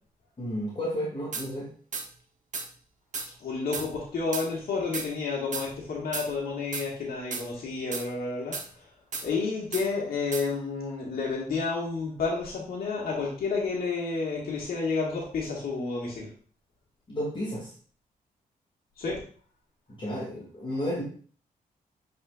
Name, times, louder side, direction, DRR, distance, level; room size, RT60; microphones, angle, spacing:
voice 1, 0.4-1.7 17.1-17.7 20.0-21.0, equal, 35° left, -5 dB, 2.4 m, -32 dB
sound 1, 1.3-1.5 1.9-2.1 2.5-2.7 3.1-3.3 3.7-3.9 4.3-4.5 4.9-5.1 5.5-5.7 6.1-6.3 6.7-6.9 7.3-7.4 7.9-8.0 8.5-8.7 9.1-9.3 9.7-9.9 10.3-10.4, right 4 dB, 55° right, 1.1 m, -34 dB
voice 2, 3.4-8.6 9.2-16.3 19.0-19.2, left 4 dB, 80° left, -4 dB, 1.8 m, -30 dB
8.8 x 4.3 x 2.5 m, 0.43 s
cardioid pair, 80°, 15 cm